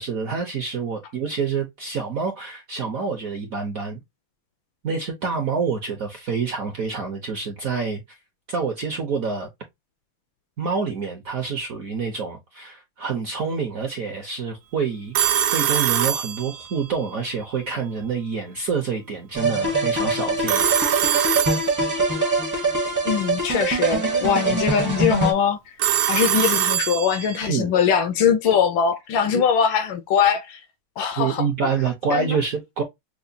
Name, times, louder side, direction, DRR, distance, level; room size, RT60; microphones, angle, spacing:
voice 1, 0.0-4.0 4.8-8.2 8.5-9.5 10.6-21.3 27.4-27.7 29.3-29.4 31.2-32.8, right 5 dB, 65° right, 0.8 m, -27 dB
Telephone, 15.1-16.9 20.5-22.2 25.8-27.5, right 10 dB, 85° right, 1.5 m, -23 dB
sound 1, 19.3-25.3, right 2 dB, 25° right, 0.4 m, -23 dB
voice 2, 23.0-25.6 26.1-30.6 31.0-31.4 32.1-32.4, left 7 dB, 75° left, 1.2 m, -21 dB
6.0 x 2.2 x 2.6 m
omnidirectional pair, 2.4 m